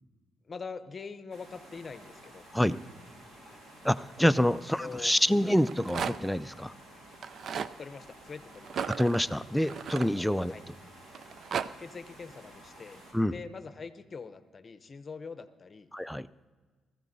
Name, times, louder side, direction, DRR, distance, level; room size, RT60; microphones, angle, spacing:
voice 1, 0.5-2.5 3.4-3.6 4.8-5.4 7.8-8.8 10.5-10.6 11.8-13.0 13.3-15.9, left 5 dB, 35° left, 12 dB, 0.7 m, -43 dB
sound 1, 1.3-13.1, right 1 dB, 75° right, 5.1 m, -52 dB
voice 2, 3.8-6.7 8.9-10.6 13.1-13.4 15.9-16.3, equal, 5° left, 12 dB, 0.4 m, -27 dB
Rattle, 5.5-6.4 7.1-7.7 8.6-10.6 11.1-11.7, right 7 dB, 60° right, 0.4 m, -35 dB
20.5 x 14.5 x 2.7 m, 1.4 s
cardioid pair, 90°, 0 cm